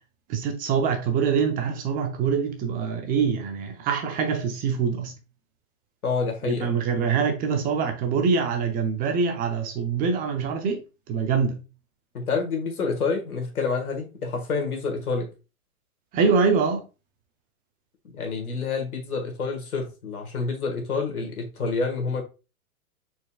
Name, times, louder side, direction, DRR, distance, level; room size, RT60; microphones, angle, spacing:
voice 1, 0.3-5.1 6.5-10.8 11.1-11.6 16.1-16.8, right 5 dB, 20° right, 0.5 m, -24 dB
voice 2, 6.0-6.8 12.1-15.3 18.1-22.2, left 4 dB, 90° left, 1.8 m, -28 dB
4.4 x 4.3 x 2.3 m
hypercardioid pair, 120°, 43 cm